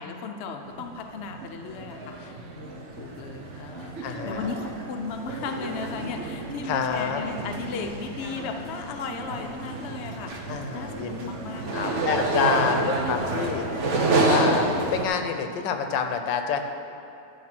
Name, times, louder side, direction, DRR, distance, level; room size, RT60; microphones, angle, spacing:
voice 1, 0.0-12.0 12.5-13.9, left 4 dB, 60° left, 4 dB, 0.7 m, -36 dB
sound 1, 0.7-1.0 1.2-15.0, right 2 dB, 50° right, 1.1 m, -29 dB
voice 2, 4.0-4.5 6.6-7.2 10.5-11.3 11.7-13.7 14.3-16.6, left 6 dB, 90° left, 6 dB, 1.4 m, -28 dB
11.5 x 4.8 x 6.0 m, 3.0 s
omnidirectional pair, 1.9 m